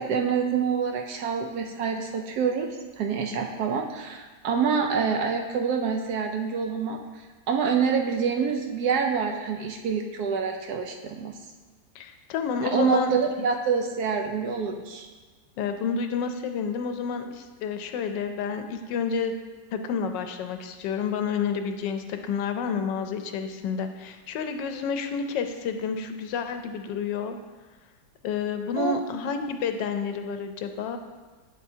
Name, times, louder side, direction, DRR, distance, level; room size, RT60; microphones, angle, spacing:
voice 1, 0.0-2.7 3.0-7.0 7.5-11.3 12.6-15.1 28.8-29.0, right 6 dB, 70° right, 3 dB, 1.1 m, -26 dB
voice 2, 11.9-13.1 15.6-19.3 19.7-27.4 28.2-31.0, left 6 dB, 85° left, 7 dB, 1.3 m, -29 dB
8.2 x 7.6 x 2.7 m, 1.3 s
omnidirectional pair, 1.9 m